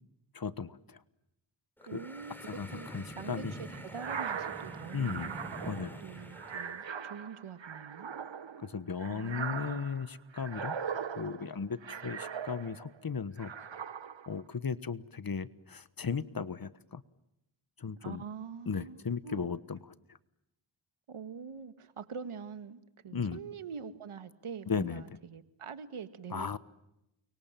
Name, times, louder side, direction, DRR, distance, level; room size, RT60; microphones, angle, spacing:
voice 1, 0.3-1.0 1.9-2.0 2.5-3.5 4.9-5.3 5.7-6.0 8.6-10.8 11.1-13.5 14.3-17.0 17.8-18.2 18.7-19.8 23.1-23.4 24.7-25.0 26.3-26.6, left 5 dB, 45° left, 1.3 m, -36 dB
sound 1, 1.8-6.8, right 1 dB, 5° left, 6.6 m, -46 dB
voice 2, 1.9-5.4 6.0-8.1 9.1-10.1 18.0-19.5 21.1-26.6, right 6 dB, 85° right, 2.0 m, -45 dB
sound 2, 3.9-13.0 13.4-14.4, right 7 dB, 65° right, 1.7 m, -40 dB
30.0 x 24.0 x 7.6 m
cardioid pair, 60°, 49 cm